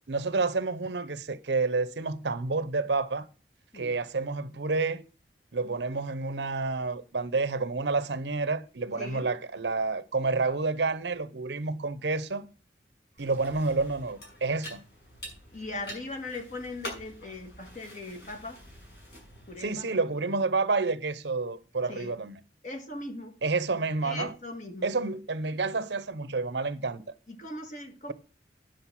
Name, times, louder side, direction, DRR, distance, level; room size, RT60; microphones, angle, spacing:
voice 1, 0.1-3.3 3.7-5.0 5.5-12.5 13.2-14.8 19.6-22.4 23.4-24.3 24.8-27.0, right 3 dB, 80° right, 0.8 m, -29 dB
voice 2, 9.0-9.3 15.5-18.7 19.5-20.0 21.8-22.2 22.6-23.3 24.0-24.9 27.3-28.1, left 2 dB, 45° left, 1.7 m, -39 dB
sound 1, 13.2-19.7, equal, 65° left, 6.0 m, -46 dB
10.0 x 6.4 x 6.0 m
head